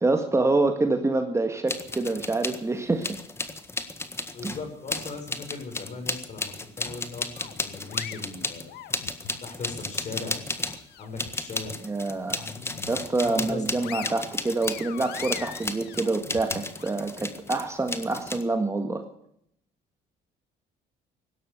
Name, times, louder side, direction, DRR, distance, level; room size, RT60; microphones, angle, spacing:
voice 1, 0.0-3.2 4.4-4.6 11.8-12.5 12.9-19.0, right 3 dB, 15° right, 6 dB, 1.8 m, -26 dB
sound 1, 1.7-2.6 3.0-10.9 11.2-18.4, left 2 dB, 15° left, 1.6 m, -34 dB
voice 2, 4.3-8.7 9.4-10.4 11.0-11.7 13.2-13.9, left 4 dB, 45° left, 4 dB, 6.7 m, -38 dB
sound 2, 7.4-9.4 9.8-11.3 11.7-11.8 12.3-13.1 13.5-16.9, left 10 dB, 75° left, 1.6 m, -42 dB
17.0 x 12.5 x 6.7 m, 0.72 s
cardioid pair, 110°, 17 cm